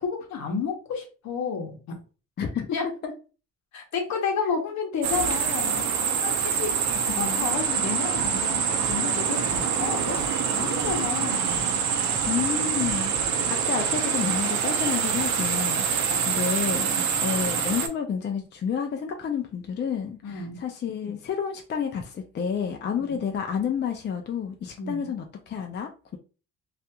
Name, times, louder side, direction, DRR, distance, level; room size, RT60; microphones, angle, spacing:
voice 1, 0.0-2.0 2.7-2.9 3.7-10.2 10.5-11.7 16.1-16.2 16.9-17.2 20.2-20.6 23.1-23.2 24.8-25.1, left 5 dB, 65° left, 0.9 m, -31 dB
voice 2, 2.4-2.7 3.0-3.1 7.2-7.5 12.3-13.1 13.5-16.9 17.2-26.2, left 7 dB, 35° left, 0.4 m, -30 dB
sound 1, 5.0-17.9, right 7 dB, 70° right, 0.5 m, -25 dB
Drum, 8.1-8.3 8.8-9.1 9.5-9.6 10.1-10.4 10.8-11.0 11.5-11.7 12.1-12.3 12.8-13.3, right 1 dB, 20° right, 1.3 m, -40 dB
2.7 x 2.4 x 2.2 m
cardioid pair, 90°, 30 cm